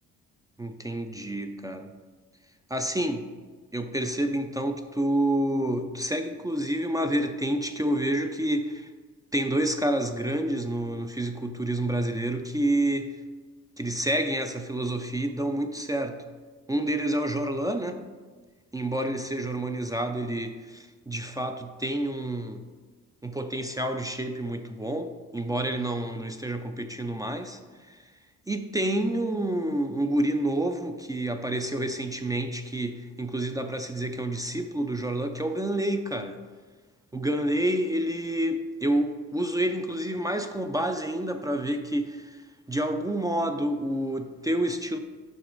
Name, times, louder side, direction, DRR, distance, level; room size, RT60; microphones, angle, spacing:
voice 1, 0.6-1.9 2.7-3.3 3.7-8.9 9.3-13.2 13.8-16.2 16.7-18.0 18.7-22.6 23.2-28.0 28.5-36.4 37.1-45.0, right 1 dB, 10° right, 6 dB, 0.3 m, -28 dB
5.8 x 4.8 x 3.9 m, 1.4 s
cardioid pair, 90°, 30 cm